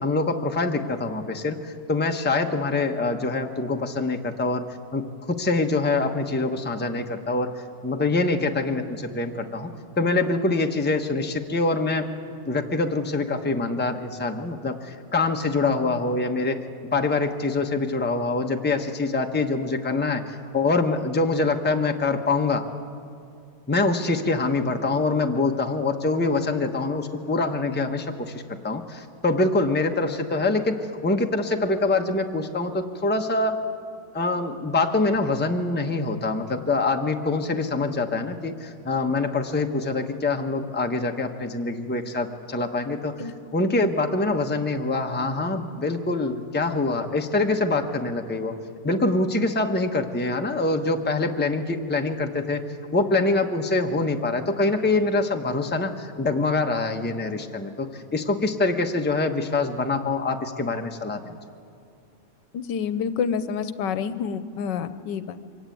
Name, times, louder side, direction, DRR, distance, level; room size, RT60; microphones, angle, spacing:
voice 1, 0.0-4.6 4.9-9.7 10.0-12.1 12.5-16.6 16.9-22.7 23.7-33.6 34.1-48.6 48.8-52.6 52.9-61.4, left 3 dB, 5° left, 4 dB, 0.9 m, -25 dB
voice 2, 62.5-65.4, left 7 dB, 90° left, 13 dB, 1.5 m, -28 dB
24.0 x 16.0 x 9.3 m, 2.3 s
omnidirectional pair, 1.9 m